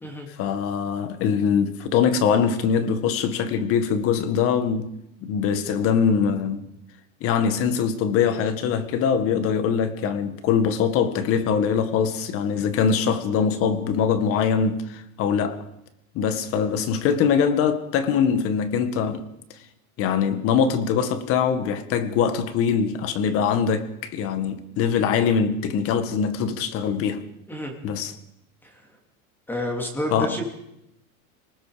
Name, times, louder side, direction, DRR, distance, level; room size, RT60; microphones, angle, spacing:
voice 1, 0.4-4.9 5.2-6.6 7.2-15.7 16.2-19.3 20.0-27.2 27.8-28.1 30.1-30.3, left 7 dB, 30° left, 1.9 m, -23 dB
voice 2, 29.5-30.4, left 1 dB, 5° left, 3.3 m, -29 dB
28.5 x 19.5 x 5.2 m
supercardioid pair, 170°, 44 cm